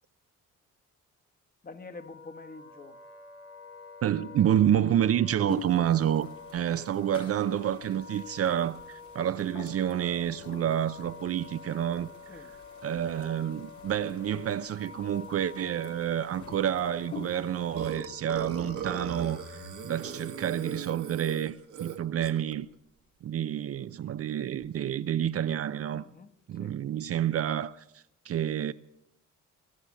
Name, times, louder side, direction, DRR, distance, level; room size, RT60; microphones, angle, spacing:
voice 1, 1.6-3.0 6.7-6.8 12.2-12.5 25.9-26.7, left 3 dB, 30° left, 1.4 m, -47 dB
Wind instrument woodwind instrument, 1.9-21.0, left 5 dB, 50° left, 3.3 m, -48 dB
voice 2, 4.0-12.1 12.8-22.7 23.2-26.0 26.5-27.8 28.2-28.7, right 10 dB, 50° right, 0.6 m, -29 dB
sound 1, 5.5-17.9, left 5 dB, 75° left, 2.3 m, -48 dB
Burping eructation, 17.8-22.5, right 7 dB, 80° right, 1.7 m, -38 dB
21.5 x 7.4 x 8.4 m
cardioid pair, 90°, 30 cm